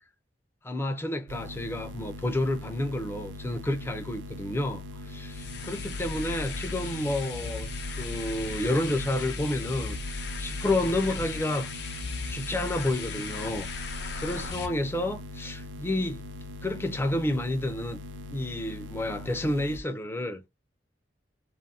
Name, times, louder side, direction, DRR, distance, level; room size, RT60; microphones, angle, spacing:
voice 1, 0.6-7.7 8.0-11.7 12.3-13.7 14.2-16.2 16.6-18.0 18.3-20.5, left 1 dB, 15° left, 0.3 m, -30 dB
sound 1, 1.3-19.8, left 2 dB, 80° right, 0.4 m, -41 dB
sound 2, 5.3-14.7, left 3 dB, 65° left, 0.6 m, -36 dB
2.5 x 2.3 x 2.6 m
head